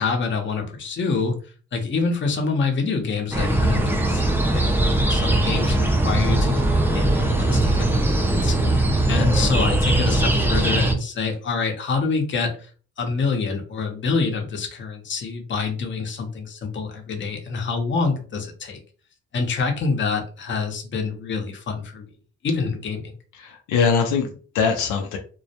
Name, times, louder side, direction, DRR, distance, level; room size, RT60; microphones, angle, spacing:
voice 1, 0.0-1.4 1.7-8.5 9.1-12.6 13.0-18.8 19.3-22.1 22.4-23.1, left 4 dB, 40° left, 3 dB, 0.7 m, -26 dB
sound 1, 3.3-10.9, right 1 dB, 5° right, 0.4 m, -20 dB
voice 2, 23.4-25.2, left 6 dB, 80° left, 4 dB, 0.5 m, -22 dB
2.2 x 2.1 x 2.8 m, 0.40 s
cardioid pair, 90°, 30 cm